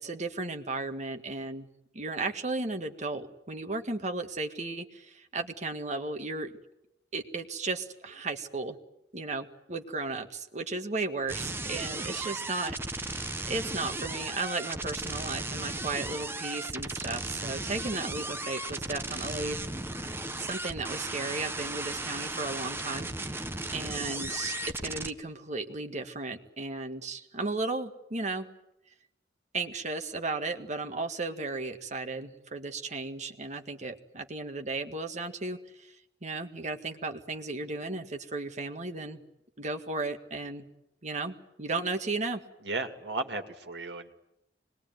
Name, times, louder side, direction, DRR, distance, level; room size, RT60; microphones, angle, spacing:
voice 1, 0.0-1.7 1.9-6.5 7.1-8.8 9.1-19.6 20.4-24.6 24.8-28.5 29.5-36.0 36.2-39.2 39.6-40.7 41.0-42.4, right 3 dB, 40° right, 5 dB, 1.9 m, -35 dB
sound 1, 11.3-25.1, right 2 dB, 15° right, 1.2 m, -36 dB
voice 2, 42.6-44.1, right 2 dB, 75° right, 6 dB, 2.6 m, -35 dB
25.5 x 21.0 x 9.4 m, 0.84 s
head